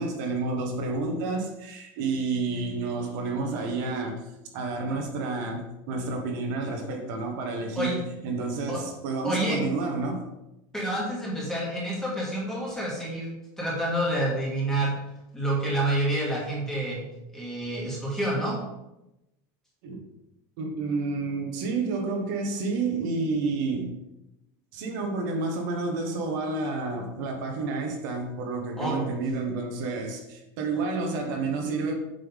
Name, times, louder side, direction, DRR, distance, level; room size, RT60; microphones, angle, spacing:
voice 1, 0.0-4.2 4.5-10.2 19.8-20.0 20.6-24.0 24.7-31.9, right 3 dB, 60° right, 2 dB, 1.3 m, -30 dB
voice 2, 9.2-9.6 10.7-14.9 15.3-17.1 17.3-18.6 28.8-29.0, right 1 dB, 5° left, -5 dB, 1.9 m, -28 dB
7.7 x 5.5 x 3.6 m, 0.92 s
supercardioid pair, 175°, 11 cm